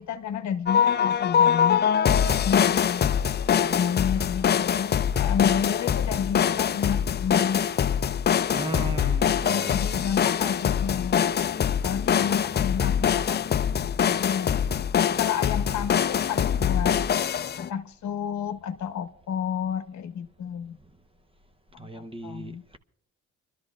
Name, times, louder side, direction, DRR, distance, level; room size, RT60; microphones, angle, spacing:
voice 1, 0.0-1.8 2.3-3.0 3.7-7.7 9.4-11.2 11.8-13.6 14.0-14.5 15.1-17.0 17.6-20.8 21.7-22.6, left 8 dB, 65° left, 0.9 m, -30 dB
sound 1, 0.7-17.7, left 8 dB, 35° left, 0.4 m, -24 dB
voice 2, 8.5-9.9 21.8-22.8, right 2 dB, 20° right, 0.8 m, -36 dB
29.5 x 13.0 x 2.4 m
cardioid pair, 90°, 30 cm